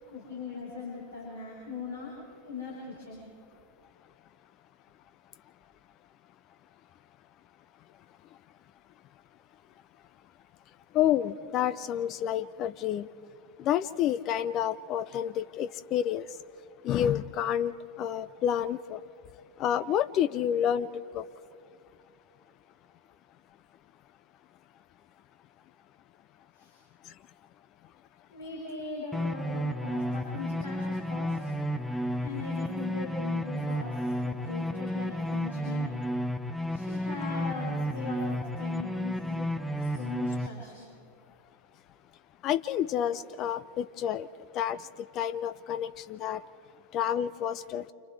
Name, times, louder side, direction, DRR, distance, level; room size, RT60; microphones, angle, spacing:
voice 1, 0.1-2.1 2.4-3.3 26.5-26.8 28.3-31.5 32.2-35.9 36.7-39.5 39.8-40.9, left 4 dB, 75° left, -6 dB, 6.3 m, -40 dB
voice 2, 10.9-13.1 13.6-16.3 16.8-17.7 18.0-19.0 19.6-20.9 21.1-21.2 42.4-44.3 44.5-44.8 45.2-46.4 46.9-47.9, left 10 dB, 35° left, 14 dB, 0.5 m, -29 dB
sound 1, 29.1-40.5, equal, ahead, 0.7 m, -32 dB
29.5 x 28.5 x 3.3 m, 2.6 s
figure-of-eight pair, 90°, 0 cm